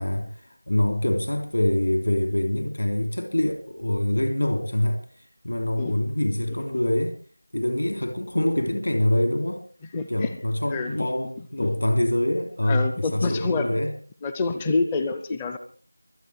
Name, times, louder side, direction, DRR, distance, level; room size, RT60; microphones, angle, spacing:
voice 1, 0.0-5.0 5.4-7.2 7.5-9.6 10.1-13.9, left 1 dB, 65° left, 5 dB, 3.1 m, -25 dB
voice 2, 9.9-10.3 10.7-11.1 11.6-11.7 12.7-13.7 14.2-15.6, left 3 dB, 5° left, 8 dB, 0.6 m, -27 dB
24.5 x 9.0 x 4.7 m, 0.43 s
figure-of-eight pair, 180°, 0 cm